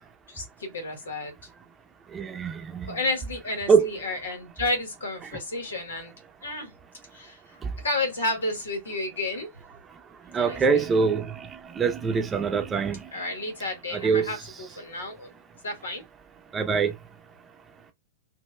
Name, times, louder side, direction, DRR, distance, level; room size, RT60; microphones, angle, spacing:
voice 1, 0.3-1.3 2.9-6.1 6.4-6.7 7.1-7.4 7.8-9.5 10.4-10.9 13.1-15.3 15.6-16.0, left 2 dB, 85° left, 1.8 m, -31 dB
voice 2, 2.1-3.0 3.7-3.9 7.6-7.7 10.3-13.1 13.9-14.3 16.5-16.9, right 5 dB, 20° right, 0.7 m, -24 dB
5.2 x 2.8 x 2.2 m
hypercardioid pair, 115°, 0 cm